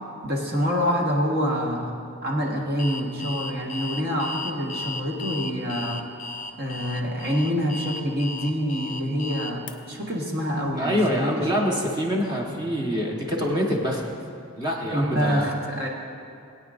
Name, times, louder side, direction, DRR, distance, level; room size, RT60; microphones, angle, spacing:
voice 1, 0.2-1.9 2.2-6.0 6.6-11.7 14.9-15.9, equal, 45° right, -1 dB, 1.4 m, -26 dB
Alarm, 2.8-9.7, left 3 dB, 35° left, 0.5 m, -35 dB
voice 2, 10.8-14.0 14.6-15.5, equal, 20° right, -2 dB, 1.2 m, -25 dB
21.0 x 9.0 x 2.6 m, 2.5 s
head